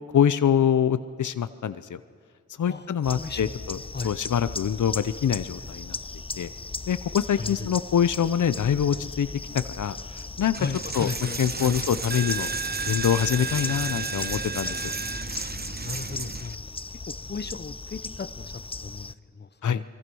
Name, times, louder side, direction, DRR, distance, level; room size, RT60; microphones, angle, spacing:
voice 1, 0.1-2.0 2.6-3.8 4.0-6.0 6.4-6.5 6.9-9.3 9.5-10.7 10.9-11.1 11.4-12.5 12.9-14.8 19.6-19.8, left 8 dB, 80° left, 13 dB, 0.8 m, -25 dB
sound 1, 3.0-19.1, left 3 dB, 20° left, 0.5 m, -38 dB
Coin (dropping), 10.5-16.6, right 4 dB, 35° right, 0.9 m, -32 dB
voice 2, 10.6-11.8 15.8-16.6 17.1-19.8, left 4 dB, 35° left, 13 dB, 0.9 m, -35 dB
26.0 x 22.5 x 6.3 m, 2.2 s
cardioid pair, 70°, 30 cm